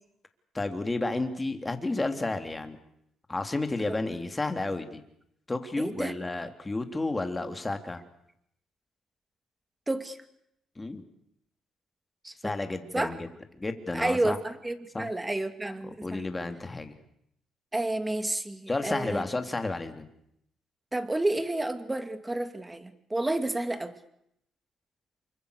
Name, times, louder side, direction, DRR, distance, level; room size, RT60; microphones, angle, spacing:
voice 1, 0.5-2.8 3.3-5.0 5.5-8.0 10.8-11.0 12.4-13.3 13.6-14.4 14.9-15.1 16.0-16.9 18.7-20.1, left 2 dB, 20° left, 7 dB, 3.5 m, -31 dB
voice 2, 5.8-6.1 9.9-10.2 12.2-12.5 12.9-13.1 13.9-16.2 17.7-19.3 20.9-23.9, right 2 dB, 15° right, 10 dB, 2.6 m, -30 dB
29.0 x 25.0 x 6.8 m, 0.76 s
cardioid pair, 90°, 0 cm